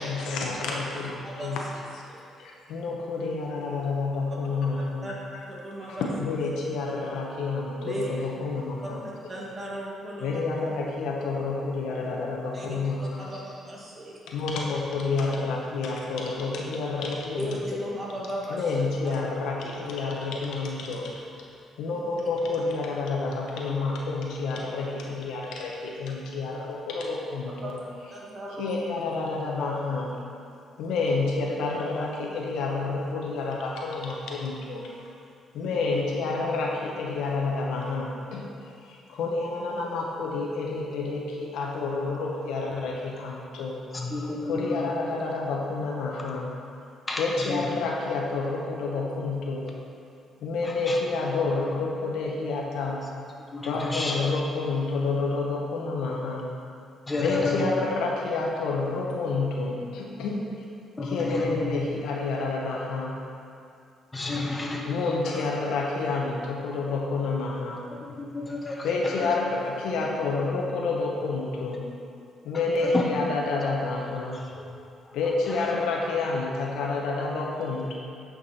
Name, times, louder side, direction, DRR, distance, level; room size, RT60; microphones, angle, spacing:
voice 1, 0.0-1.6 2.4-5.4 5.9-9.0 10.2-13.3 14.3-17.8 18.5-21.1 21.8-27.8 28.6-30.1 30.8-34.9 35.5-38.5 38.9-43.8 44.5-46.5 47.2-49.6 50.4-53.0 53.6-56.5 57.2-60.4 61.1-63.2 64.9-67.8 68.8-71.9 72.4-74.4 75.1-78.0, left 3 dB, 85° left, -2 dB, 1.1 m, -29 dB
voice 2, 1.2-1.6 2.1-2.2 3.2-3.3 5.0-5.1 5.5-6.1 7.8-8.1 9.3-10.4 12.5-12.9 13.2-14.2 17.4-18.6 19.0-19.1 27.6-28.7 35.6-35.8, right 1 dB, 35° right, -5 dB, 2.0 m, -36 dB
voice 3, 43.9-44.9 47.1-47.7 50.6-51.0 53.5-54.2 57.1-57.6 61.0-62.0 64.1-64.8 65.2-65.4 67.9-69.3 72.5-73.0 74.3-74.8 75.0-75.2 75.5-75.7, left 3 dB, 20° left, 0 dB, 1.2 m, -31 dB
9.1 x 5.3 x 4.3 m, 2.4 s
cardioid pair, 90°, 0 cm